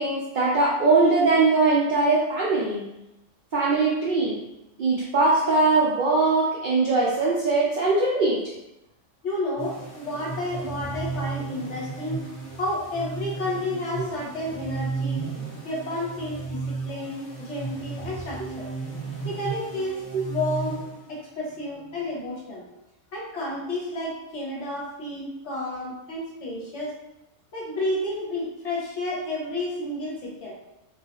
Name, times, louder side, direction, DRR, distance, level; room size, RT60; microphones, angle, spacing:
voice 1, 0.0-2.9 3.5-4.4 4.8-8.4 20.1-20.2, right 3 dB, 65° right, -5 dB, 0.4 m, -21 dB
voice 2, 9.2-12.3 12.6-15.3 15.6-18.7 19.2-20.0 20.3-22.6 23.1-26.9 27.5-30.5, left 1 dB, 65° left, -5 dB, 1.0 m, -31 dB
sound 1, 9.6-21.3, right 4 dB, 30° left, 1.1 m, -34 dB
2.4 x 2.3 x 2.8 m, 0.90 s
omnidirectional pair, 1.3 m